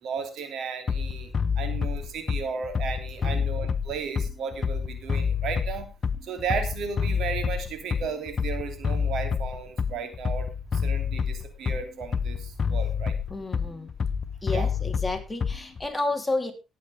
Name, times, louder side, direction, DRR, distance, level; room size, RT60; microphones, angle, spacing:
voice 1, 0.0-5.9 6.2-13.2 14.5-14.7, right 6 dB, 75° right, 7 dB, 3.0 m, -34 dB
Bass drum, 0.9-15.9, left 6 dB, 45° left, 0.8 m, -28 dB
voice 2, 13.3-13.9 14.4-16.5, left 2 dB, 10° left, 4 dB, 3.1 m, -31 dB
18.5 x 8.4 x 3.5 m, 0.27 s
cardioid pair, 90°, 0 cm